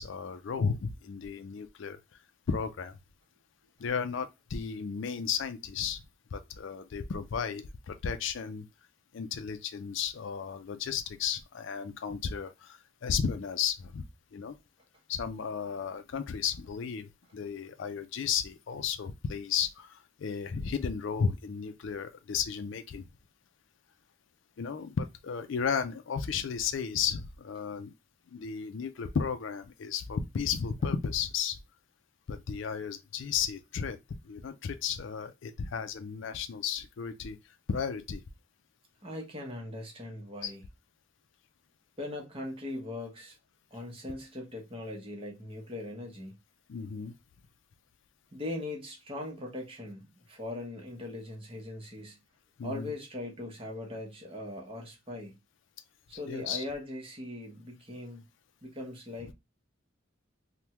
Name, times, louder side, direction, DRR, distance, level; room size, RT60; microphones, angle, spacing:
voice 1, 0.0-2.0 2.5-2.9 3.8-6.0 6.3-8.7 9.1-14.0 14.3-14.6 15.1-23.0 24.6-27.9 28.3-31.6 32.3-34.0 34.2-37.4 37.7-38.2 40.4-40.5 46.7-47.1 52.6-52.9 56.3-56.7, left 6 dB, 65° left, 0.4 m, -34 dB
voice 2, 39.0-40.6 42.0-43.4 43.7-46.4 48.3-52.2 52.6-55.3 56.1-58.2 58.6-59.3, left 1 dB, 25° right, 0.8 m, -40 dB
3.4 x 2.2 x 2.8 m
head